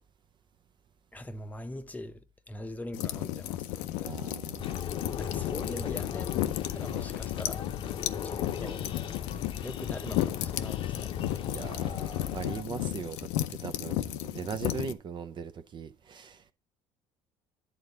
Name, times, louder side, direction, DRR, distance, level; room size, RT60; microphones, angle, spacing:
voice 1, 1.1-4.2 5.2-6.3 6.7-7.7 8.2-8.8 9.3-11.1, left 1 dB, 15° left, 0.7 m, -42 dB
sound 1, 2.9-14.9, left 14 dB, 80° left, 0.5 m, -34 dB
voice 2, 4.0-4.8 11.5-13.2 13.5-16.5, right 6 dB, 40° right, 0.6 m, -39 dB
sound 2, 4.6-12.6, left 8 dB, 45° left, 0.7 m, -37 dB
9.2 x 3.8 x 6.6 m
supercardioid pair, 80°, 12 cm